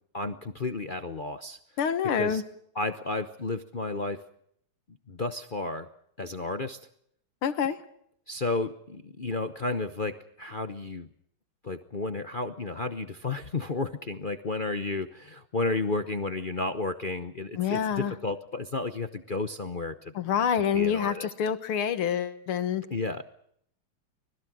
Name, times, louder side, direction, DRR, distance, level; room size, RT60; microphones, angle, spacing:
voice 1, 0.1-1.6 2.0-2.4 2.7-4.2 5.1-5.9 6.2-6.8 8.3-11.1 11.6-20.1 20.7-21.3 22.9-23.2, left 3 dB, 45° left, 9 dB, 0.6 m, -32 dB
voice 2, 1.8-2.4 7.4-7.8 17.6-18.1 20.2-22.8, left 8 dB, 90° left, 11 dB, 2.3 m, -27 dB
25.0 x 20.0 x 6.3 m, 0.68 s
omnidirectional pair, 2.3 m